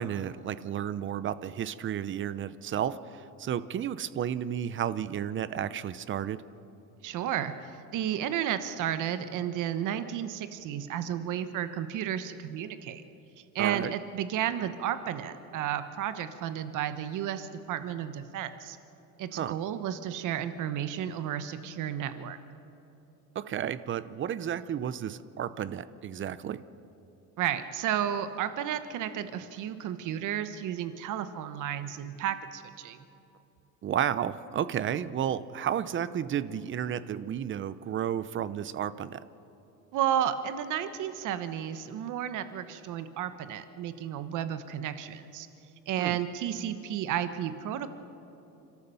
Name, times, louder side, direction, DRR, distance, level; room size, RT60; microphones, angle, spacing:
voice 1, 0.0-6.4 13.6-13.9 19.3-19.6 23.3-26.6 33.8-39.2 46.0-46.2, right 9 dB, 35° right, 15 dB, 0.7 m, -32 dB
voice 2, 7.0-13.0 13.5-18.8 19.2-22.4 27.4-33.0 39.9-45.5 45.9-47.9, right 10 dB, 65° right, 11 dB, 1.2 m, -32 dB
29.5 x 13.0 x 7.0 m, 2.9 s
cardioid pair, 145°, 33 cm